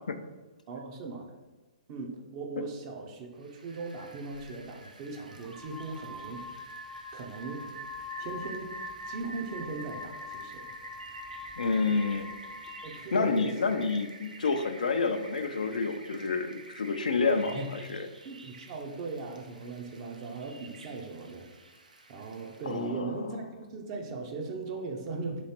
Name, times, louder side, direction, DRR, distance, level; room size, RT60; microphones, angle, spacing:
voice 1, 0.7-1.3 1.9-6.5 7.1-7.7 8.2-8.7 9.1-10.7 12.8-13.7 17.3-17.7 18.2-21.5 22.1-25.4, right 3 dB, 40° right, 2 dB, 0.7 m, -38 dB
Rain, 3.4-22.9, right 4 dB, 90° right, 0.5 m, -48 dB
sound 1, 5.3-13.0, left 4 dB, 5° right, 0.4 m, -45 dB
voice 2, 11.6-12.3 13.1-18.1 22.7-23.3, left 4 dB, 80° left, 8 dB, 0.4 m, -29 dB
3.1 x 3.1 x 4.3 m, 1.2 s
hypercardioid pair, 125°, 4 cm